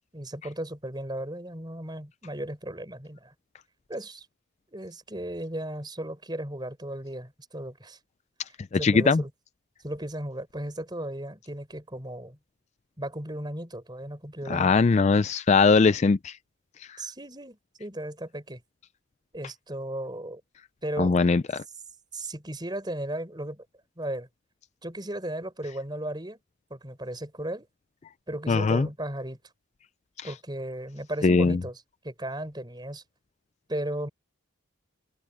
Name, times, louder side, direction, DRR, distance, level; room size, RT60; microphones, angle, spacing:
voice 1, 0.1-3.3 3.9-4.3 4.7-8.0 8.7-9.3 9.8-12.4 13.0-14.7 17.0-18.6 19.3-20.4 20.8-21.2 22.1-23.6 24.0-24.3 24.8-26.4 26.7-27.7 28.3-29.4 30.2-33.0 33.7-34.1, right 1 dB, 20° right, 4.8 m, -35 dB
voice 2, 8.8-9.2 14.5-16.4 21.0-21.6 28.5-28.9 30.2-30.3 31.2-31.6, left 4 dB, 30° left, 0.3 m, -21 dB
open air
head